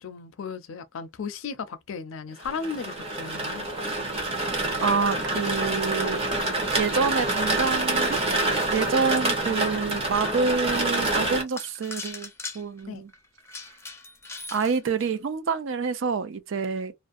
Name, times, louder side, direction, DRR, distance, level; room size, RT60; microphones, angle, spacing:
voice 1, 0.0-3.7 12.9-13.0, left 5 dB, 70° left, 0.5 m, -35 dB
sound 1, 2.4-11.4, right 2 dB, 30° right, 0.8 m, -27 dB
sound 2, 4.5-7.8 8.3-8.4 9.0-9.1 9.6-9.7 10.8-10.9 11.3-15.2, left 3 dB, 15° left, 0.5 m, -42 dB
voice 2, 4.8-6.2 6.7-8.2 8.7-12.3 12.5-13.1 14.5-16.9, right 5 dB, 65° right, 0.4 m, -27 dB
2.5 x 2.0 x 2.4 m
head